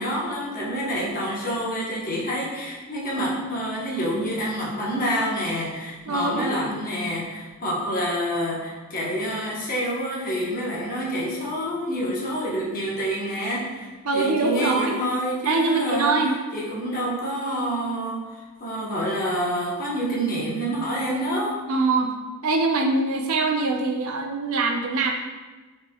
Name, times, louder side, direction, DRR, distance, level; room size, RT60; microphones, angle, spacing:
voice 1, 0.0-16.1 16.5-21.6, equal, 40° left, -5 dB, 1.0 m, -27 dB
voice 2, 6.1-6.6 14.0-15.0 15.5-16.3 21.7-22.2 22.4-25.1, right 3 dB, 70° right, 3 dB, 0.5 m, -23 dB
5.9 x 3.2 x 2.3 m, 1.3 s
head